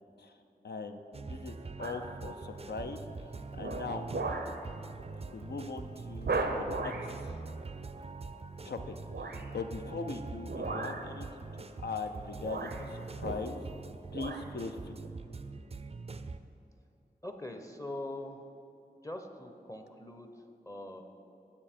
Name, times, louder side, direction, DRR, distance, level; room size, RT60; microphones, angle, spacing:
voice 1, 0.6-1.0 1.3-3.3 3.6-4.1 5.3-7.4 8.6-13.6 14.1-15.0, left 4 dB, 85° left, 7 dB, 0.5 m, -40 dB
sound 1, 1.1-16.4, right 4 dB, 40° right, 0.4 m, -44 dB
sound 2, 1.8-2.1 2.7-3.0 3.5-4.6 5.0-5.2 5.5-5.6 6.2-7.1 9.1-9.5 10.4-11.1 12.0-12.1 12.4-13.8 14.1-14.5 15.0-15.1, right 3 dB, 90° right, 0.6 m, -36 dB
voice 2, 17.2-18.4 19.0-21.0, left 1 dB, 20° left, 5 dB, 0.6 m, -42 dB
7.6 x 7.0 x 4.3 m, 2.8 s
wide cardioid pair, 50°, 17 cm